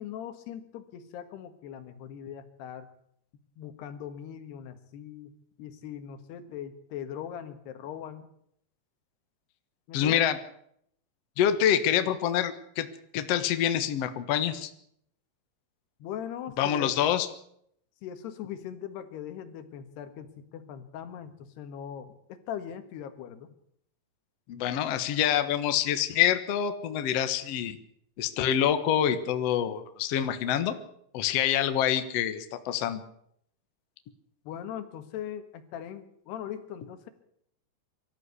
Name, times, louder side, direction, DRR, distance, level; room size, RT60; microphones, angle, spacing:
voice 1, 0.0-2.9 3.6-8.3 9.9-10.2 16.0-17.0 18.0-23.5 34.5-37.1, left 9 dB, 85° left, 10 dB, 3.6 m, -40 dB
voice 2, 9.9-10.4 11.4-12.9 13.1-14.7 16.6-17.3 24.5-27.8 28.2-30.7 31.1-33.0, left 10 dB, 60° left, 10 dB, 1.7 m, -26 dB
23.5 x 13.5 x 8.3 m, 0.70 s
omnidirectional pair, 4.6 m